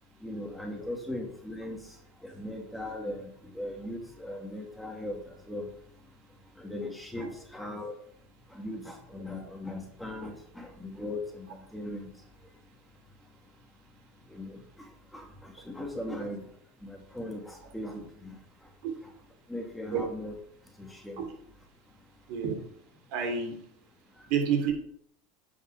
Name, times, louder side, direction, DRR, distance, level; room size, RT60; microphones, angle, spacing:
voice 1, 0.2-1.8 2.2-5.2 5.5-5.6 6.6-7.9 8.5-11.5 11.7-12.1 14.3-14.6 15.1-16.4 16.8-18.3 19.5-20.3 20.8-21.2, left 1 dB, 5° left, 2 dB, 2.1 m, -38 dB
voice 2, 22.3-22.6 23.1-23.6 24.3-24.7, right 7 dB, 60° right, 3 dB, 3.1 m, -29 dB
9.8 x 5.5 x 5.0 m, 0.63 s
hypercardioid pair, 105°, 0 cm